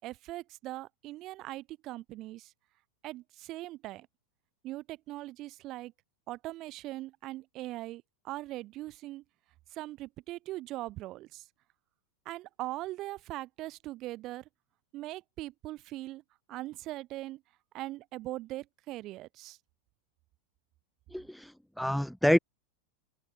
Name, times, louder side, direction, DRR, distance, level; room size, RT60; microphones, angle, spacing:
voice 1, 0.0-2.5 3.0-4.1 4.6-5.9 6.3-9.2 9.7-11.4 12.2-14.4 14.9-16.2 16.5-17.4 17.7-19.6, right 17 dB, 35° right, 4.6 m, -40 dB
voice 2, 21.1-21.5 21.8-22.4, equal, ahead, 2.6 m, -26 dB
figure-of-eight pair, 90°, 0 cm